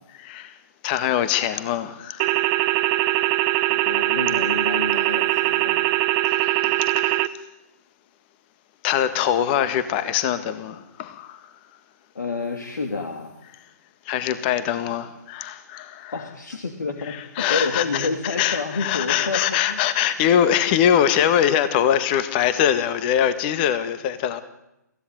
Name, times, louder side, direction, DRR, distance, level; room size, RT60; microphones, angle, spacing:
voice 1, 0.2-2.4 6.2-7.5 8.8-11.5 14.0-16.2 17.0-24.4, left 10 dB, 35° left, 1.7 m, -23 dB
sound 1, 2.2-7.3, right 18 dB, 30° right, 0.9 m, -21 dB
voice 2, 3.7-5.8 12.1-13.3 16.1-17.2 17.5-19.8, left 4 dB, 70° left, 2.8 m, -29 dB
24.5 x 16.0 x 9.2 m
figure-of-eight pair, 130°, 10 cm